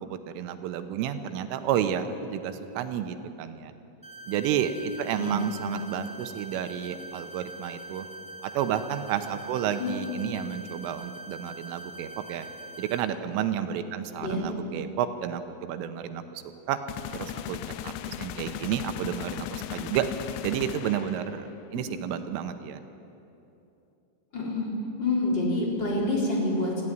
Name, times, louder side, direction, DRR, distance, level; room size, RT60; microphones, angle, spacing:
voice 1, 0.0-3.7 4.3-8.1 8.4-12.5 12.8-16.4 16.7-16.8 17.1-17.6 17.8-20.1 20.4-22.8, right 9 dB, 85° right, 9 dB, 3.4 m, -31 dB
sound 1, 4.0-13.0, right 1 dB, 5° right, 0.7 m, -43 dB
sound 2, 16.9-21.6, left 11 dB, 80° left, 2.6 m, -37 dB
voice 2, 24.3-24.7 25.0-26.8, left 2 dB, 25° left, -3 dB, 3.8 m, -27 dB
20.0 x 14.5 x 9.4 m, 2.8 s
omnidirectional pair, 5.8 m